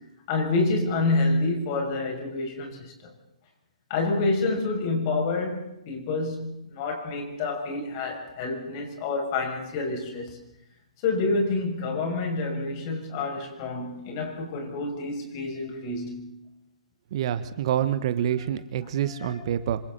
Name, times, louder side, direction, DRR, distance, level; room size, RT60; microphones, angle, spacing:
voice 1, 0.3-3.1 3.9-10.4 11.0-16.3 19.2-19.3, left 3 dB, 40° left, 6.8 m, -28 dB
voice 2, 17.1-19.8, right 10 dB, 50° right, 1.4 m, -27 dB
26.5 x 26.0 x 4.2 m
figure-of-eight pair, 125°, 4 cm